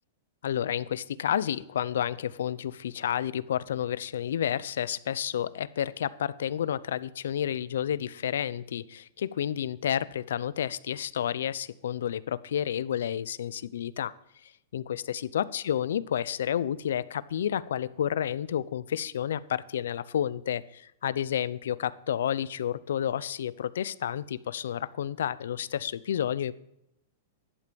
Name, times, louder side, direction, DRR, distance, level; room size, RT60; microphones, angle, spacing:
voice 1, 0.4-14.1 14.7-26.5, left 10 dB, 80° left, 18 dB, 0.8 m, -30 dB
15.5 x 11.5 x 5.3 m, 0.80 s
supercardioid pair, 155°, 0 cm